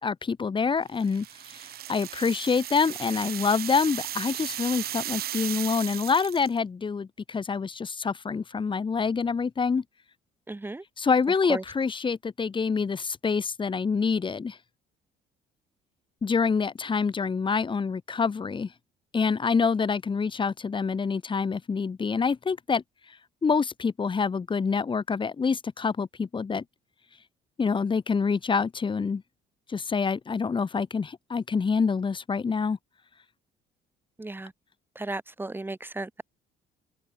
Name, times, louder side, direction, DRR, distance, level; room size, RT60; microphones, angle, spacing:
voice 1, 0.0-9.8 11.0-14.6 16.2-18.7 19.1-22.8 23.4-26.6 27.6-29.2 29.7-32.8, left 5 dB, 30° left, 4.3 m, -26 dB
sound 1, 1.0-6.6, right 12 dB, 65° right, 6.1 m, -36 dB
voice 2, 10.5-10.8 11.5-11.6 34.2-34.5 34.9-36.2, right 2 dB, 10° right, 6.4 m, -35 dB
cardioid pair, 110°, 17 cm